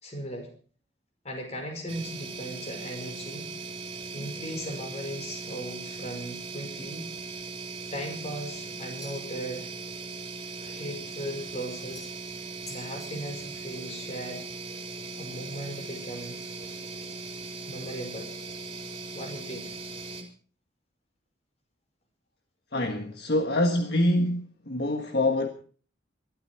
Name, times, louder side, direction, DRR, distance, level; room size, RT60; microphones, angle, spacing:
voice 1, 0.0-0.5 1.2-3.5 4.1-7.1 7.9-9.7 10.6-12.1 12.7-14.5 15.2-16.4 17.7-18.3 19.1-19.7, equal, 35° left, 5.3 m, -37 dB
sound 1, 1.9-20.2, right 3 dB, 30° right, 3.6 m, -39 dB
sound 2, 9.0-9.5 11.9-12.3 12.7-13.6, left 2 dB, 20° left, 3.4 m, -48 dB
voice 2, 22.7-25.5, left 1 dB, 55° left, 1.7 m, -25 dB
21.5 x 13.0 x 4.6 m
head